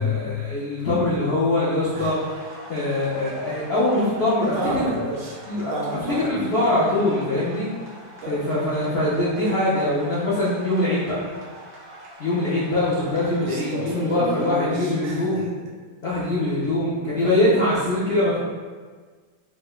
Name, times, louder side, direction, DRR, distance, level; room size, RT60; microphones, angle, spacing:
voice 1, 0.0-4.9 5.5-5.7 6.1-7.7 8.2-11.2 12.2-15.5 16.0-18.4, left 1 dB, 75° left, -9 dB, 0.5 m, -23 dB
sound 1, 1.9-14.5, equal, 65° right, 1.2 m, -43 dB
voice 2, 4.4-6.4 6.6-6.9 8.2-8.3 13.4-15.4, equal, 85° right, -3 dB, 1.4 m, -30 dB
4.6 x 2.3 x 2.3 m, 1.5 s
omnidirectional pair, 2.0 m